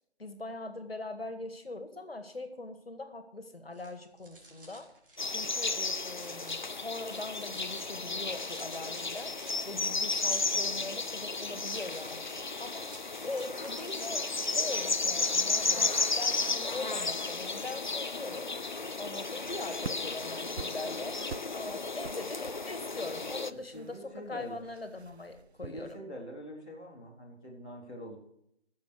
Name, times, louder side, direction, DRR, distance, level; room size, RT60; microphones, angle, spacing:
voice 1, 0.2-4.9 5.3-9.3 9.6-12.2 12.6-12.9 13.2-18.5 19.0-21.2 21.5-26.0, left 2 dB, 65° left, 8 dB, 1.9 m, -41 dB
sound 1, 3.7-17.5, right 2 dB, 55° right, 3.3 m, -53 dB
sound 2, 5.2-23.5, left 3 dB, 45° left, 0.5 m, -33 dB
sound 3, 19.0-26.0, right 5 dB, 75° right, 0.6 m, -48 dB
voice 2, 23.5-24.7 25.6-28.2, equal, 5° left, -10 dB, 0.8 m, -45 dB
17.5 x 7.0 x 4.8 m, 0.75 s
figure-of-eight pair, 160°, 33 cm